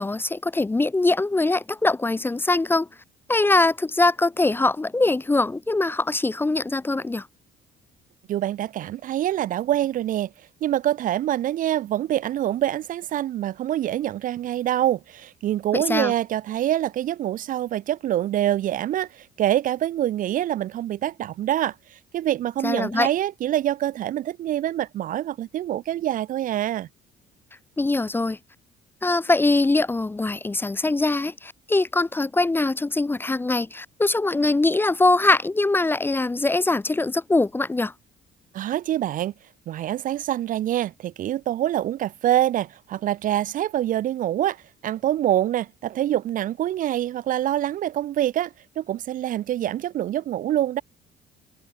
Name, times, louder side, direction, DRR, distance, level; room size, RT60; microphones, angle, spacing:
voice 1, 0.0-2.9 3.3-7.3 15.7-16.1 22.6-23.1 27.8-28.4 29.0-37.9, left 2 dB, 10° left, 0.6 m, -22 dB
voice 2, 8.3-10.3 10.6-26.9 38.5-39.3 39.7-50.8, right 12 dB, 50° right, 0.5 m, -25 dB
cardioid pair, 110°, 17 cm